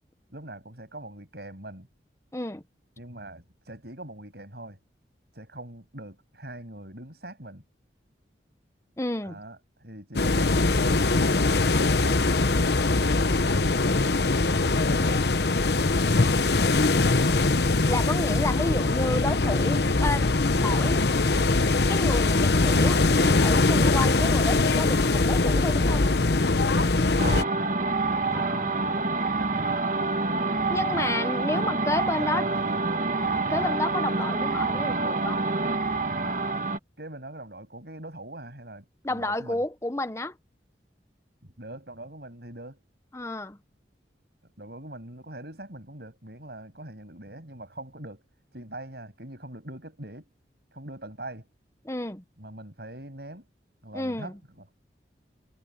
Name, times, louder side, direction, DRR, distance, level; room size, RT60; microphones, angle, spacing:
voice 1, 0.3-1.9 3.0-4.8 5.3-7.6 9.2-13.5 14.8-15.9 26.6-27.7 28.1-30.1 31.5-31.8 32.2-33.0 37.0-39.6 41.4-42.8 44.4-48.2 48.5-50.3 50.7-51.5 52.4-53.5 53.8-54.7, right 1 dB, 65° right, 7.0 m, -43 dB
voice 2, 2.3-2.6 9.0-9.4 17.9-21.0 21.9-26.1 28.3-28.8 30.7-32.5 33.5-35.5 39.0-40.4 43.1-43.6 51.8-52.2 53.9-54.4, left 2 dB, 15° left, 1.0 m, -31 dB
sound 1, 10.1-27.4, left 3 dB, 70° left, 1.0 m, -22 dB
sound 2, 27.2-36.8, right 3 dB, 45° right, 1.3 m, -27 dB
head